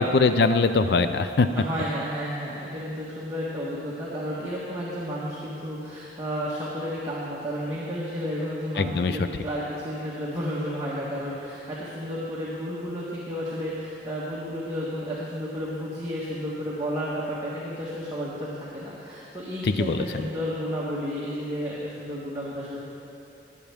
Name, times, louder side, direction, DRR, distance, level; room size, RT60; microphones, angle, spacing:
voice 1, 0.0-1.5 8.8-9.2 19.6-20.1, left 3 dB, 65° left, 10 dB, 0.4 m, -22 dB
voice 2, 1.5-22.8, equal, 20° right, -8 dB, 1.5 m, -32 dB
21.0 x 8.6 x 3.5 m, 2.8 s
head